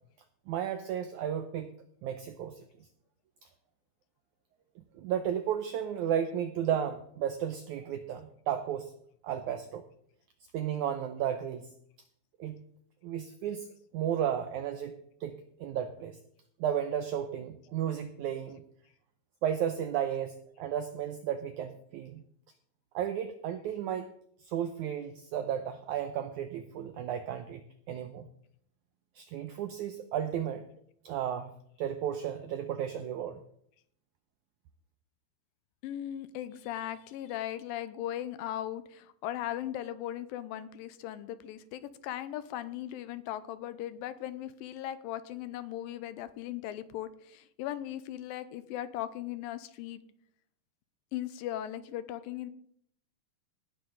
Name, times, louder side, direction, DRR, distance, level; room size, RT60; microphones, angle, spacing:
voice 1, 0.5-1.7 2.0-2.6 5.0-8.9 9.2-9.8 10.5-11.7 12.4-12.6 13.0-13.7 13.9-14.9 15.2-16.2 16.6-18.6 19.4-22.2 22.9-24.1 24.5-27.6 27.9-28.3 29.1-30.7 31.0-31.5 31.8-33.4, right 9 dB, 90° right, 9 dB, 1.7 m, -33 dB
voice 2, 35.8-50.0 51.1-52.5, left 12 dB, 80° left, 14 dB, 2.3 m, -38 dB
18.0 x 10.0 x 3.9 m, 0.68 s
omnidirectional pair, 4.3 m